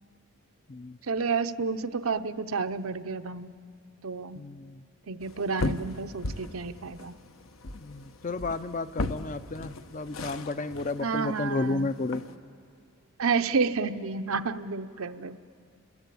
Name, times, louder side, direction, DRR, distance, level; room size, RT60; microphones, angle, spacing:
voice 1, 1.1-3.5 4.0-4.4 5.1-7.2 11.0-11.9 13.2-15.4, right 4 dB, 80° right, 0.8 m, -30 dB
voice 2, 4.3-4.8 7.7-12.2, left 3 dB, 35° left, 0.5 m, -32 dB
sound 1, 5.2-12.3, left 2 dB, 75° left, 1.0 m, -37 dB
28.0 x 21.5 x 8.5 m
head